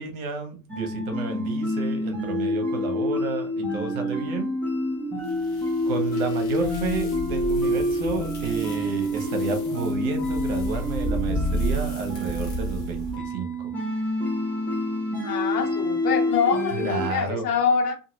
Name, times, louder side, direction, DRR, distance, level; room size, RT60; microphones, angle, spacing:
voice 1, 0.0-4.5 5.8-13.7 16.7-17.4, right 5 dB, 55° right, 0.9 m, -31 dB
sound 1, 0.7-17.1, left 1 dB, 5° left, 0.8 m, -27 dB
sound 2, 5.3-13.2, equal, 35° left, 1.3 m, -33 dB
voice 2, 15.2-17.9, left 6 dB, 70° left, 1.0 m, -25 dB
2.8 x 2.4 x 2.9 m
figure-of-eight pair, 80°, 50 cm